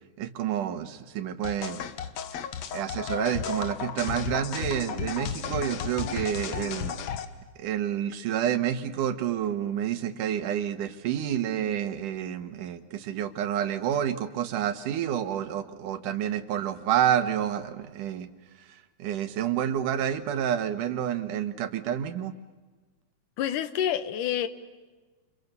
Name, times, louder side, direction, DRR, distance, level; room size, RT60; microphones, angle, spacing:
voice 1, 0.2-1.8 2.7-7.0 7.6-18.3 19.0-22.3, right 10 dB, 85° right, 10 dB, 2.9 m, -29 dB
sound 1, 1.4-7.2, left 7 dB, 65° left, 2.3 m, -33 dB
voice 2, 23.4-24.5, left 10 dB, 85° left, 12 dB, 2.8 m, -28 dB
29.5 x 29.0 x 6.8 m, 1.3 s
omnidirectional pair, 3.6 m